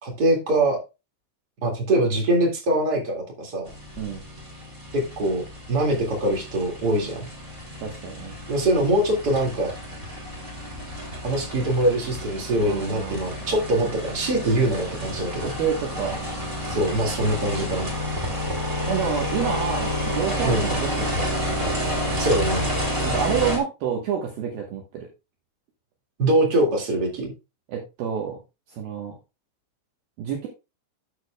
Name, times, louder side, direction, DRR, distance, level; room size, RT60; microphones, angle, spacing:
voice 1, 0.0-0.8 1.6-3.7 4.9-5.4 5.7-7.3 8.5-9.7 11.2-15.5 16.7-17.9 20.4-20.7 22.2-22.7 26.2-27.3, right 1 dB, 40° right, 0 dB, 1.4 m, -23 dB
sound 1, 3.7-23.6, equal, 15° right, 1.9 m, -30 dB
voice 2, 7.8-8.4 12.6-13.3 15.4-16.2 18.2-18.3 18.9-21.5 23.0-25.1 27.7-28.4 28.7-29.1 30.2-30.5, right 7 dB, 65° right, 0 dB, 2.7 m, -29 dB
13.5 x 6.5 x 2.2 m, 0.27 s
omnidirectional pair, 5.2 m